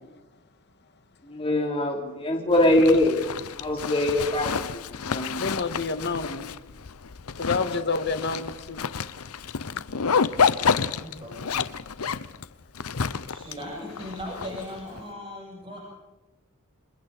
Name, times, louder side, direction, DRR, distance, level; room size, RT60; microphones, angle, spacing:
voice 1, 1.3-3.2 3.5-4.7 4.9-5.4, left 1 dB, 25° left, 3.3 m, -23 dB
Zipper (clothing), 2.5-15.0, left 6 dB, 90° left, 0.8 m, -29 dB
voice 2, 5.4-6.4 7.4-8.8, left 4 dB, 50° left, 1.8 m, -28 dB
voice 3, 11.0-11.6 11.8-11.9 13.3-15.8, equal, 25° right, 7.5 m, -38 dB
29.5 x 27.5 x 4.2 m
head